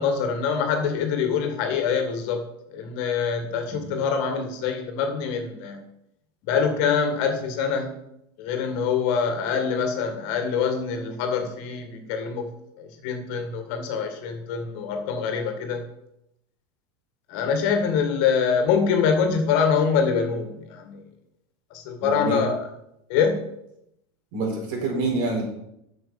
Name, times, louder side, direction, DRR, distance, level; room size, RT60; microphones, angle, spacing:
voice 1, 0.0-2.4 2.7-5.8 6.5-7.9 8.4-12.5 12.8-15.8 17.3-21.0 21.7-22.6 23.1-23.4, left 6 dB, 55° left, 6 dB, 1.9 m, -24 dB
voice 2, 22.0-22.4 24.3-25.4, right 3 dB, 60° right, 0 dB, 4.4 m, -27 dB
8.0 x 6.6 x 6.9 m, 0.81 s
supercardioid pair, 135°, 14 cm